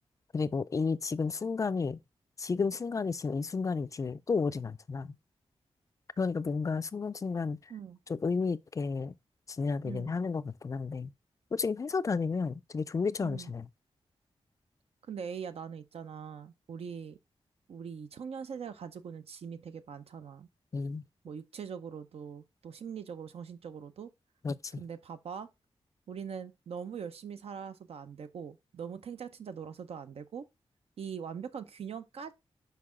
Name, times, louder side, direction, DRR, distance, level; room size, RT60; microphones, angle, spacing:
voice 1, 0.3-2.0 2.4-5.1 6.2-7.6 8.1-9.1 9.5-11.1 11.5-13.7 20.7-21.0 24.4-24.8, left 4 dB, 30° left, 0.3 m, -32 dB
voice 2, 9.8-10.1 13.2-13.5 15.1-17.2 17.7-20.5 21.2-24.1 24.8-25.5 26.1-30.4 31.0-32.3, right 7 dB, 70° right, 0.6 m, -42 dB
5.8 x 5.3 x 3.6 m
wide cardioid pair, 165°, 10 cm